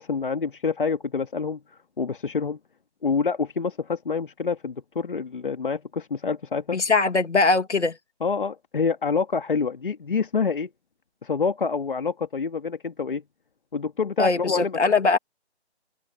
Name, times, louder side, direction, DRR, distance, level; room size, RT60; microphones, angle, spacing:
voice 1, 0.0-1.6 2.0-2.6 3.0-6.8 8.2-10.7 11.2-13.2 13.7-14.8, left 5 dB, 50° left, 2.3 m, -27 dB
voice 2, 6.7-8.0 14.2-15.2, left 3 dB, 80° left, 2.7 m, -21 dB
open air
figure-of-eight pair, 170°, 34 cm